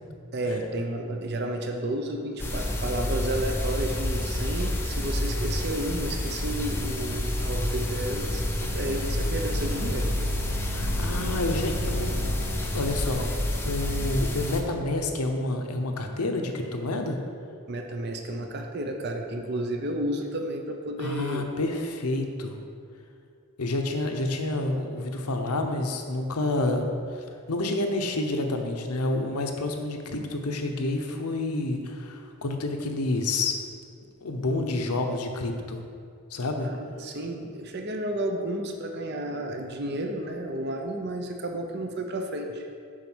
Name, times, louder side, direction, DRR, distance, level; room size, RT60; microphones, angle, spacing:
voice 1, 0.3-10.1 17.7-21.6 36.6-42.7, right 1 dB, 45° right, 4 dB, 0.6 m, -32 dB
sound 1, 2.4-14.6, left 1 dB, 10° left, 0.5 m, -29 dB
sound 2, 6.1-12.9, right 3 dB, 75° right, 1.5 m, -40 dB
voice 2, 10.6-12.1 12.7-13.3 13.6-17.2 21.0-22.6 23.6-33.5 34.2-35.8 36.3-36.7, left 2 dB, 90° left, 4 dB, 0.9 m, -29 dB
7.4 x 5.2 x 6.2 m, 2.3 s
head